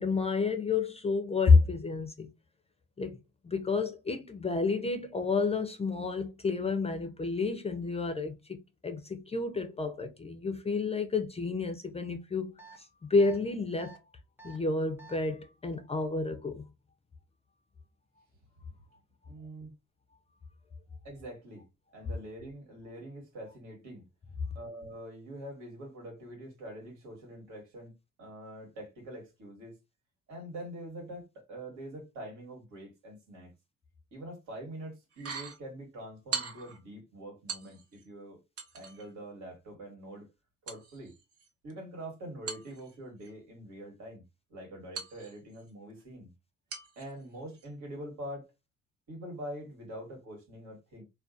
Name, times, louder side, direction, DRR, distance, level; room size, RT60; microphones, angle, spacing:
voice 1, 0.0-2.3 3.0-3.2 3.4-13.9 14.4-16.6, left 4 dB, 20° left, 0.3 m, -29 dB
sound 1, 12.6-12.8 13.2-13.4 13.8-14.0 14.4-14.6 15.0-15.2, right 4 dB, 5° right, 0.7 m, -50 dB
voice 2, 19.3-19.7 21.0-21.7 21.9-24.1 24.5-29.8 30.3-33.5 34.1-38.4 38.7-40.3 40.6-41.1 41.6-44.2 44.5-46.3 46.9-48.5 49.1-51.0, right 1 dB, 75° right, 1.4 m, -44 dB
sound 2, 35.1-35.6 36.3-36.8 37.5-38.1 38.6-39.1 40.7-41.7 42.5-43.3 45.0-45.7 46.7-47.1 47.5-47.7, right 6 dB, 50° right, 0.7 m, -40 dB
2.4 x 2.2 x 2.4 m
cardioid pair, 90°, 30 cm